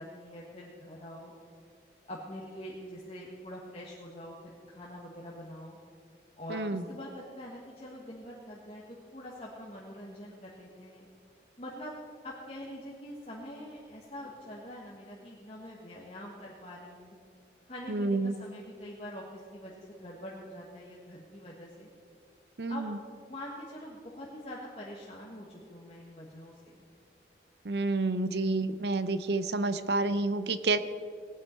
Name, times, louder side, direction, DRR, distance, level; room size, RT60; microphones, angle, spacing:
voice 1, 0.0-1.3 2.1-5.8 6.4-8.8 9.1-11.1 11.6-11.9 12.2-17.1 17.7-21.9 22.7-22.8 23.3-26.8, equal, 35° left, -4 dB, 1.4 m, -44 dB
voice 2, 6.5-6.8 17.9-18.3 22.6-23.0 27.7-30.8, right 3 dB, 75° right, 12 dB, 0.6 m, -29 dB
19.0 x 9.3 x 4.4 m, 2.2 s
head